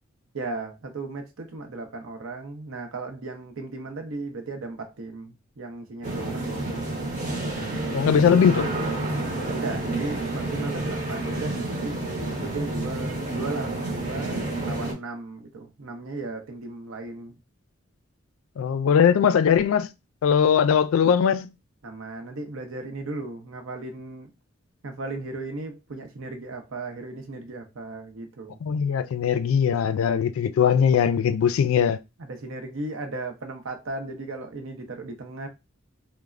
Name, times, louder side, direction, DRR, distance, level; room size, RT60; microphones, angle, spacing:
voice 1, 0.3-7.1 9.4-12.0 12.3-17.4 21.8-24.3 24.8-28.6 32.2-35.5, right 3 dB, 85° right, 0.7 m, -36 dB
sound 1, 6.0-14.9, right 2 dB, 40° right, 0.8 m, -29 dB
voice 2, 7.9-8.7 18.6-19.9 20.2-21.5 28.6-32.0, left 7 dB, 90° left, 0.3 m, -20 dB
3.1 x 2.0 x 2.4 m
head